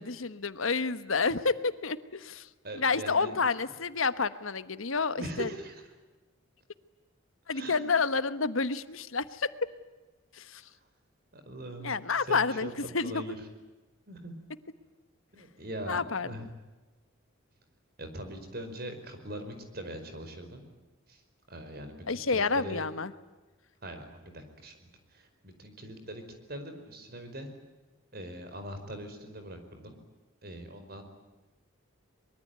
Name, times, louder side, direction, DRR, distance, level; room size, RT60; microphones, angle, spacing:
voice 1, 0.0-2.5 2.8-5.5 7.5-9.5 10.3-10.6 11.8-12.7 12.9-13.3 15.9-16.3 22.1-23.1, left 4 dB, 85° left, 13 dB, 1.2 m, -29 dB
voice 2, 2.6-3.3 5.2-5.8 7.5-7.8 10.6-10.7 11.3-12.7 13.0-13.3 14.1-14.3 15.3-16.5 18.0-20.7 21.1-21.2 21.5-22.8 23.8-26.2 26.5-27.5 28.1-30.0 30.4-31.0, right 1 dB, 50° right, 7 dB, 5.0 m, -42 dB
24.0 x 23.0 x 9.6 m, 1.2 s
head